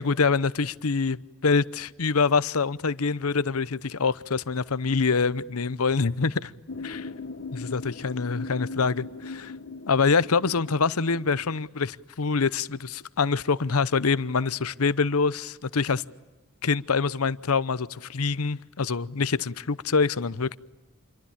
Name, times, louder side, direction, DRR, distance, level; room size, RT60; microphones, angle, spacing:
voice 1, 0.0-6.5 6.8-7.1 7.5-9.5 9.9-16.0 16.6-20.6, left 4 dB, 85° left, 0.8 m, -25 dB
sound 1, 6.7-11.6, left 3 dB, 55° left, 1.1 m, -39 dB
28.0 x 23.5 x 8.6 m
head